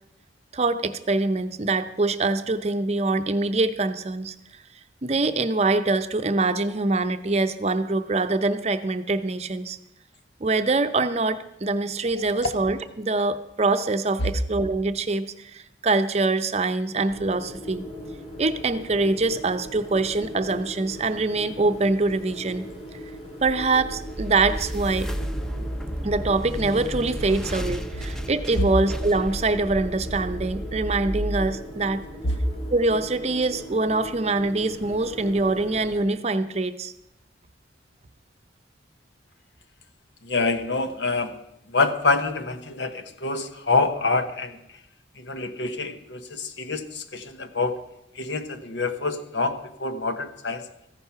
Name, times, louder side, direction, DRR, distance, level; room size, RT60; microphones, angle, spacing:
voice 1, 0.5-4.3 5.0-9.8 10.4-17.9 18.4-22.7 23.4-25.1 26.0-32.0 32.7-36.9, right 3 dB, 35° right, 10 dB, 0.6 m, -24 dB
sound 1, 17.1-36.0, equal, 35° left, 4.5 m, -40 dB
sound 2, 23.4-32.6, equal, 5° left, 0.6 m, -33 dB
voice 2, 40.2-44.6 45.2-47.8 48.1-50.7, left 3 dB, 75° left, 9 dB, 1.0 m, -26 dB
14.5 x 10.5 x 5.7 m, 0.84 s
head